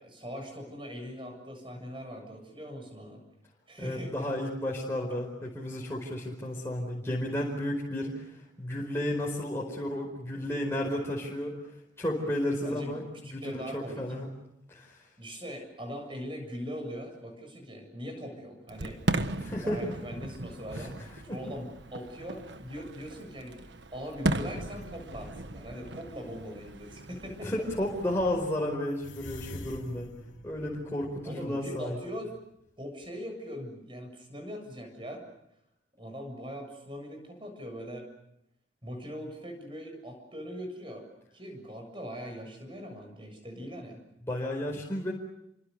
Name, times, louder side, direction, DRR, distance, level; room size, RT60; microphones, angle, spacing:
voice 1, 0.0-3.2 3.7-4.1 12.6-14.1 15.2-19.0 19.3-23.6 23.9-27.7 31.2-32.4 32.8-35.3 36.0-38.1 38.8-41.1 41.3-44.0, equal, 25° right, 5 dB, 7.3 m, -41 dB
voice 2, 3.8-8.3 8.6-11.5 12.0-14.3 14.7-15.0 19.4-19.9 20.8-20.9 21.3-21.4 27.4-30.1 30.4-32.0 44.3-45.1, left 1 dB, 15° left, -3 dB, 4.8 m, -32 dB
Fireworks, 18.7-28.6, right 1 dB, 75° right, 1.4 m, -37 dB
sound 1, 19.9-22.0 22.6-23.2 23.7-23.8 24.3-25.9 26.7-26.9 27.3-27.4 27.6-32.7 33.0-33.1, left 1 dB, 90° left, 3.2 m, -49 dB
29.5 x 25.0 x 6.8 m, 0.80 s
head